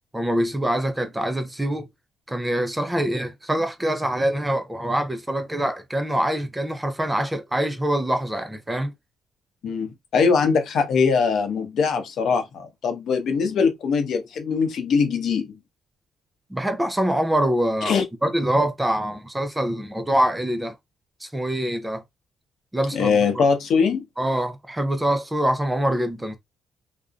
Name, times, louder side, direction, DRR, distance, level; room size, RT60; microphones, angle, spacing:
voice 1, 0.1-1.9 2.3-8.9 16.5-20.7 21.2-22.0 22.7-23.5 24.2-26.4, right 1 dB, 10° right, 0.5 m, -24 dB
voice 2, 9.6-15.5 17.9-18.1 22.9-24.1, left 5 dB, 70° left, 0.7 m, -22 dB
2.5 x 2.0 x 2.4 m
cardioid pair, 90°, 0 cm